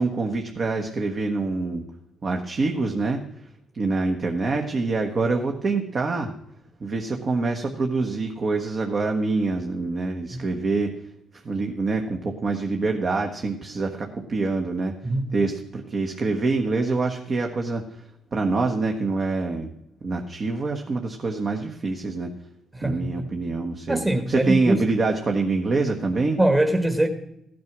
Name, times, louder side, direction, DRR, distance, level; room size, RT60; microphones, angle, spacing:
voice 1, 0.0-1.8 2.2-3.2 3.7-6.3 6.8-10.9 11.4-14.9 15.3-18.0 18.3-19.7 20.0-22.3 22.8-24.0 24.3-26.4, right 3 dB, 45° right, 1.4 m, -25 dB
voice 2, 22.7-23.1 23.9-24.8 26.4-27.1, right 1 dB, 15° right, 1.4 m, -22 dB
15.0 x 9.3 x 6.1 m
supercardioid pair, 75°, 0 cm